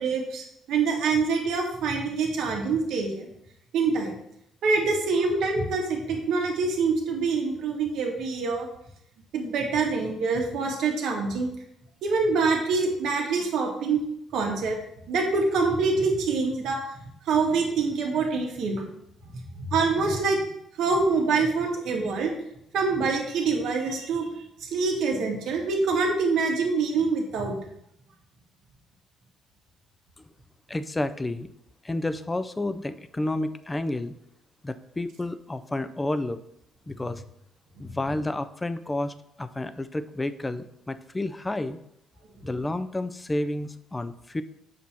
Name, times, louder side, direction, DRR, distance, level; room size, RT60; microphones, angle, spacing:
voice 1, 0.0-3.3 3.7-4.1 4.6-8.7 9.3-11.5 12.0-14.0 14.3-14.8 15.1-16.8 17.3-18.8 19.6-20.4 20.8-22.3 22.7-24.3 24.6-27.5, right 4 dB, 70° right, 1 dB, 1.5 m, -25 dB
voice 2, 30.7-31.5 31.8-34.1 34.6-36.4 36.9-37.2 37.8-41.8 42.4-44.4, left 2 dB, 15° left, 12 dB, 0.3 m, -30 dB
7.4 x 2.8 x 5.8 m, 0.74 s
cardioid pair, 145°, 0 cm